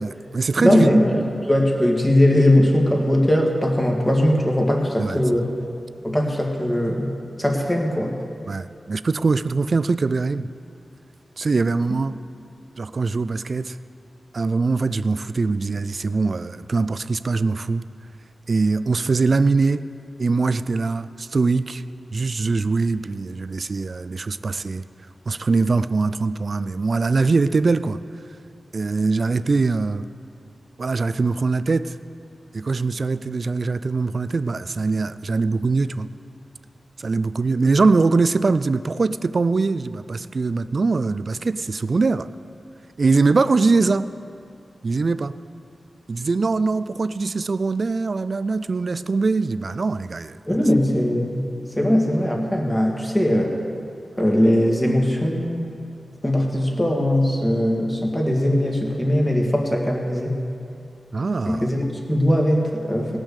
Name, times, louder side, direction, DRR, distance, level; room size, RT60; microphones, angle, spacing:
voice 1, 0.0-0.9 5.0-5.2 8.5-10.5 11.4-12.1 12.8-13.8 14.3-17.8 18.5-19.8 20.2-21.8 22.1-24.9 25.3-28.0 28.7-30.1 30.8-32.0 32.5-36.1 37.0-42.3 43.0-44.1 44.8-45.4 46.1-50.4 61.1-61.7, right 3 dB, 55° right, 14 dB, 0.4 m, -22 dB
voice 2, 0.6-5.5 6.0-7.1 7.4-8.1 50.5-51.4 51.8-53.6 54.2-55.6 56.2-60.3 61.5-63.2, left 1 dB, 15° left, 0 dB, 1.9 m, -20 dB
18.5 x 6.2 x 6.6 m, 2.5 s
wide cardioid pair, 80°, 0 cm